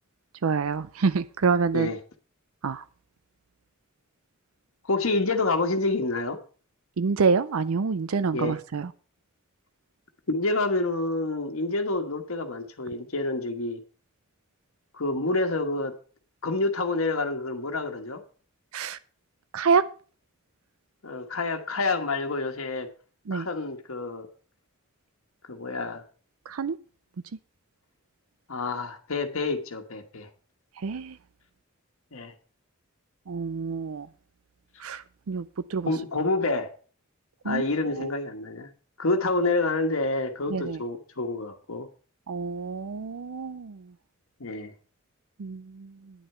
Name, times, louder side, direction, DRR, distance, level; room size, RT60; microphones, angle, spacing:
voice 1, 0.4-1.9 2.6-2.8 7.0-8.9 18.7-19.0 19.5-19.8 23.3-23.5 26.5-26.8 30.8-31.2 33.3-34.1 34.8-35.9 37.4-37.6 37.9-38.1 40.5-40.8 42.3-43.8 45.4-45.9, right 5 dB, 75° right, 0.5 m, -27 dB
voice 2, 4.9-6.4 8.3-8.6 10.3-13.8 14.9-15.9 16.4-18.2 21.0-22.9 23.3-24.3 25.5-26.0 28.5-30.3 32.1-32.3 35.8-36.7 37.4-38.7 39.0-41.9 44.4-44.7, left 2 dB, 70° left, 1.3 m, -28 dB
10.0 x 8.0 x 5.6 m
head